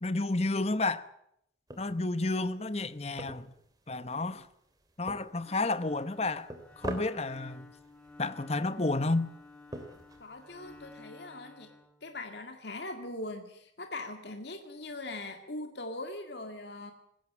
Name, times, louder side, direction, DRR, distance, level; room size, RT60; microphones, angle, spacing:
voice 1, 0.0-1.1 1.8-3.5 3.9-4.5 5.0-7.7 8.2-9.3, left 2 dB, 35° left, 1.0 m, -31 dB
sound 1, 1.7-11.0, right 1 dB, 20° right, 2.9 m, -46 dB
Bowed string instrument, 5.4-12.6, left 2 dB, 5° left, 1.7 m, -53 dB
voice 2, 10.2-11.7 12.0-16.9, left 2 dB, 60° left, 2.1 m, -41 dB
20.0 x 17.0 x 8.7 m
head